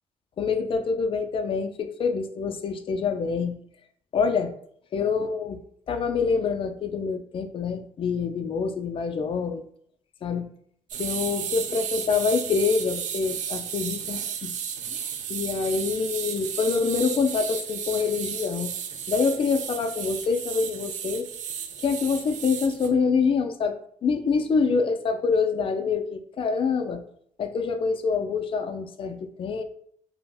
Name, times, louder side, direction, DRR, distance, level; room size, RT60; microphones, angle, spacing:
voice 1, 0.4-3.6 4.1-4.5 4.9-5.6 5.9-9.6 10.2-10.5 11.0-14.5 15.3-18.7 19.1-21.3 21.8-27.0 27.4-29.6, left 5 dB, 40° left, 7 dB, 0.4 m, -26 dB
sound 1, 10.9-22.9, right 8 dB, 65° right, 0.4 m, -33 dB
2.5 x 2.1 x 3.4 m, 0.64 s
cardioid pair, 95°, 13 cm